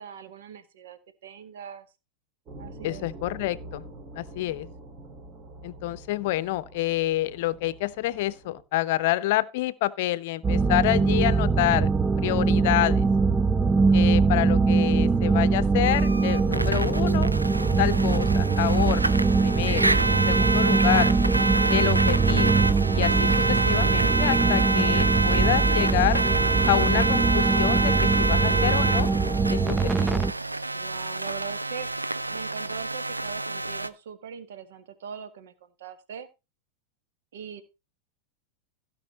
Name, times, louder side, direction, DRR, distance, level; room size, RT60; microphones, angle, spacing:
voice 1, 0.0-1.9 2.6-3.1 30.7-31.9 32.3-36.3 37.3-37.6, right 7 dB, 60° right, 1.7 m, -41 dB
sound 1, 2.5-8.6, right 1 dB, 30° right, 3.1 m, -45 dB
voice 2, 2.8-3.9 4.2-4.7 5.6-11.9 12.2-13.1 13.9-17.3 17.8-19.1 19.4-21.1 21.7-22.6 22.9-26.2 26.7-29.1 29.5-30.2, left 16 dB, 50° left, 0.7 m, -28 dB
sound 2, 10.4-30.3, right 4 dB, 15° right, 0.6 m, -22 dB
sound 3, 15.8-33.9, right 2 dB, 85° right, 0.6 m, -27 dB
16.0 x 5.5 x 4.2 m
figure-of-eight pair, 90°, 0 cm